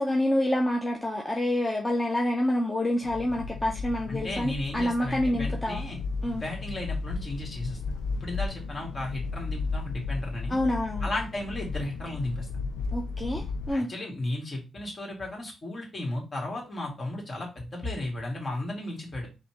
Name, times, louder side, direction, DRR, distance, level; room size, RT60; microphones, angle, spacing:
voice 1, 0.0-5.8 6.2-6.4 10.5-11.1 12.9-13.9, left 1 dB, 20° left, 0 dB, 0.8 m, -27 dB
sound 1, 3.0-13.7, left 4 dB, 90° left, 0.4 m, -34 dB
voice 2, 4.1-6.0 6.3-10.6 11.0-12.5 13.7-19.3, left 1 dB, 45° left, 0 dB, 2.1 m, -34 dB
4.0 x 2.7 x 3.1 m, 0.28 s
supercardioid pair, 50°, 0 cm